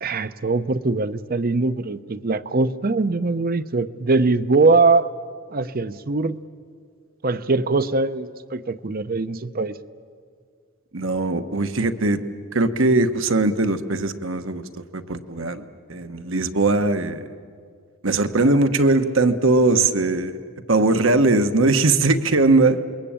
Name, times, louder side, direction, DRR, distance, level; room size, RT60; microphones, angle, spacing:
voice 1, 0.0-5.1 5.5-6.4 7.2-9.8, right 3 dB, 45° right, 13 dB, 0.7 m, -21 dB
voice 2, 10.9-12.2 12.5-14.6 14.9-17.3 18.0-20.4 20.7-22.8, right 2 dB, 70° right, 8 dB, 1.2 m, -20 dB
27.5 x 21.5 x 8.8 m, 2.1 s
head